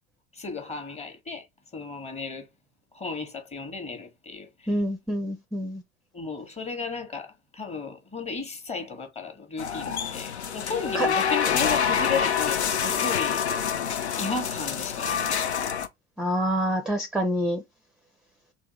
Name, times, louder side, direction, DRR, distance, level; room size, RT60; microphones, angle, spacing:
voice 1, 0.3-1.4 1.7-2.5 2.9-4.8 6.1-13.4 14.2-15.2, left 4 dB, 20° left, 0.9 m, -34 dB
voice 2, 4.7-5.8 10.9-11.1 16.2-17.6, equal, ahead, 0.4 m, -26 dB
sound 1, 9.6-15.9, left 7 dB, 85° left, 0.5 m, -26 dB
3.4 x 2.2 x 2.9 m
figure-of-eight pair, 70°, 32 cm